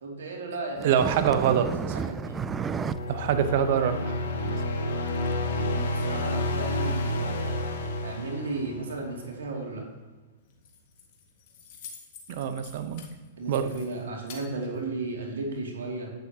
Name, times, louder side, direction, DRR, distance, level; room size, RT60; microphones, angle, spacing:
voice 1, 0.0-2.4 5.7-7.6 8.0-9.8 13.4-16.1, right 3 dB, 85° right, 0 dB, 2.4 m, -35 dB
sound 1, 0.8-3.0 3.4-3.5 3.7-3.8 4.5-4.6 5.3-5.4 6.2-6.3, right 6 dB, 20° right, 0.3 m, -32 dB
voice 2, 0.8-1.7 3.1-4.2 4.4-4.6 12.3-13.0 13.5-13.7, right 8 dB, 60° right, 10 dB, 0.9 m, -25 dB
sound 2, 1.8-9.1, left 1 dB, 75° left, 1.5 m, -30 dB
Keys jangling, 10.4-15.4, left 6 dB, 55° left, 1.7 m, -49 dB
11.0 x 9.0 x 2.9 m, 1.3 s
hypercardioid pair, 120°, 0 cm